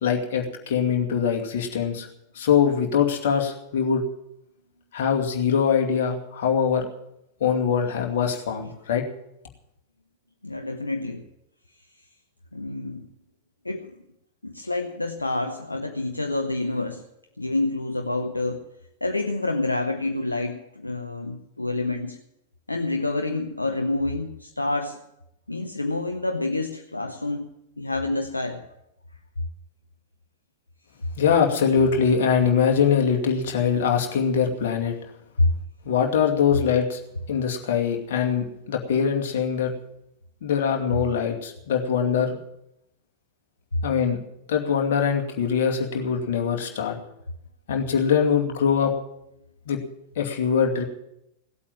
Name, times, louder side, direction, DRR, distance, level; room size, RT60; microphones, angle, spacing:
voice 1, 0.0-2.1 2.3-4.0 4.9-6.9 7.4-9.1 31.1-34.9 35.9-37.0 37.3-39.7 40.4-42.4 43.8-44.2 44.5-46.9 47.7-48.9 49.7-49.8 50.2-50.8, left 7 dB, 55° left, 2 dB, 2.5 m, -23 dB
voice 2, 10.4-11.2 12.5-13.1 13.6-13.9 14.4-17.0 17.4-18.7 19.0-22.2 22.7-25.0 25.5-27.4 27.8-28.6 35.4-35.5 43.7-43.8, left 2 dB, 85° left, 5 dB, 1.0 m, -27 dB
17.5 x 8.5 x 9.0 m, 0.82 s
figure-of-eight pair, 90°, 0 cm